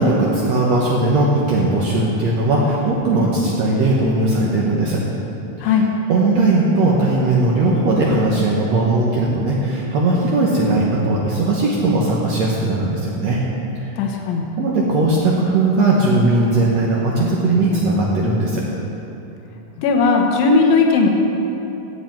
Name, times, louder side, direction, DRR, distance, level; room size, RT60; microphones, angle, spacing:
voice 1, 0.0-5.0 5.6-5.7 6.1-13.4 13.8-13.9 14.6-18.6, right 2 dB, 85° right, -4 dB, 1.5 m, -18 dB
voice 2, 14.0-14.5 19.8-21.1, left 4 dB, 70° left, 2 dB, 2.6 m, -16 dB
17.5 x 7.6 x 4.5 m, 3.0 s
omnidirectional pair, 4.6 m